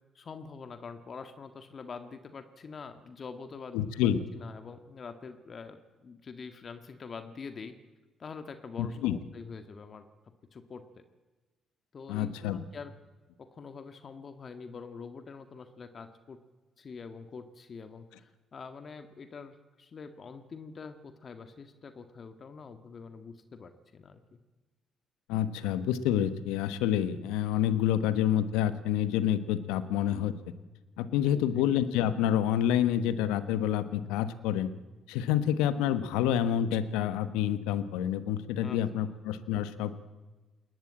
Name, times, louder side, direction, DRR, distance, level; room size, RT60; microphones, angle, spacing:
voice 1, 0.2-7.7 8.2-10.1 10.5-10.9 11.9-12.9 13.4-16.4 16.8-24.4 31.3-31.5 38.6-38.8, left 5 dB, 50° left, 9 dB, 1.9 m, -45 dB
voice 2, 3.7-4.2 8.8-9.2 12.1-12.6 25.3-30.3 31.0-34.7 35.1-40.0, left 10 dB, 80° left, 13 dB, 1.2 m, -28 dB
21.0 x 19.0 x 8.8 m, 1.2 s
hypercardioid pair, 50°, 0 cm